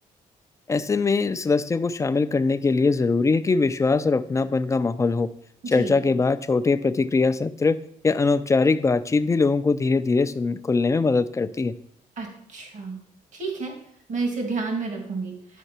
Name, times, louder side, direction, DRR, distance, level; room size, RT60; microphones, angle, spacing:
voice 1, 0.7-5.3 5.7-7.8 8.0-11.7, left 4 dB, 20° left, 11 dB, 0.4 m, -22 dB
voice 2, 5.6-6.0 12.2-13.0 13.3-13.7 14.1-15.6, right 4 dB, 55° right, 2 dB, 1.9 m, -30 dB
10.0 x 4.3 x 4.3 m, 0.71 s
cardioid pair, 90°, 15 cm